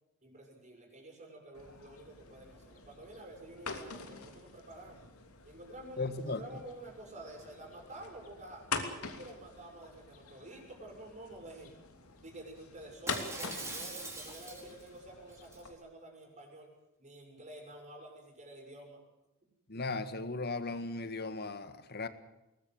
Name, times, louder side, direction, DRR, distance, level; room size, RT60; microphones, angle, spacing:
voice 1, 0.2-5.1 5.4-8.7 8.9-11.7 12.2-16.7 17.0-19.0, right 1 dB, 35° right, 2 dB, 6.9 m, -50 dB
sound 1, 1.5-15.7, left 5 dB, 90° left, 3.0 m, -45 dB
voice 2, 6.0-6.4 19.7-22.1, left 3 dB, 50° left, 11 dB, 1.8 m, -37 dB
Shatter, 13.1-14.9 15.3-15.6, right 2 dB, 15° right, 4.9 m, -42 dB
22.0 x 19.5 x 7.9 m, 0.95 s
head